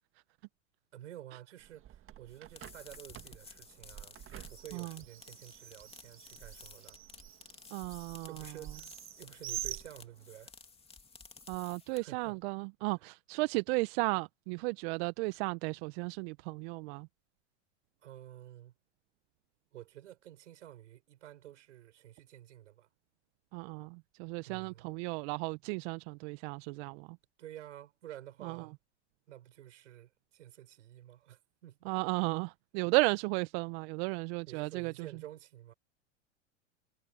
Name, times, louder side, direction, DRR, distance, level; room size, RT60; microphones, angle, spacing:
voice 1, 0.9-7.0 8.3-10.5 11.9-12.4 13.0-13.1 18.0-18.7 19.7-22.9 24.4-24.9 27.4-28.7 29.3-31.9 34.4-35.7, right 12 dB, 75° right, 6.7 m, -51 dB
Bird, 1.6-10.5, right 12 dB, 35° right, 1.7 m, -47 dB
sound 1, 2.3-12.3, left 4 dB, 15° left, 3.0 m, -54 dB
voice 2, 7.7-8.3 11.5-17.1 23.5-27.2 28.4-28.5 31.9-34.9, right 27 dB, 55° right, 1.1 m, -34 dB
hypercardioid pair, 95°, 37 cm